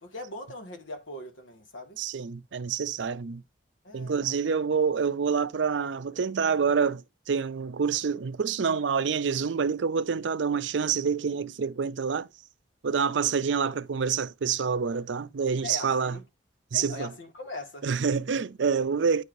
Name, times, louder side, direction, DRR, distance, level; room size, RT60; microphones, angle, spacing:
voice 1, 0.0-2.0 3.8-4.3 15.6-16.2 16.7-17.9, left 2 dB, 85° left, 1.8 m, -40 dB
voice 2, 2.0-3.4 3.9-12.3 12.8-16.2 16.7-17.1 17.8-19.2, right 6 dB, 80° right, 0.5 m, -27 dB
9.7 x 4.8 x 2.6 m
head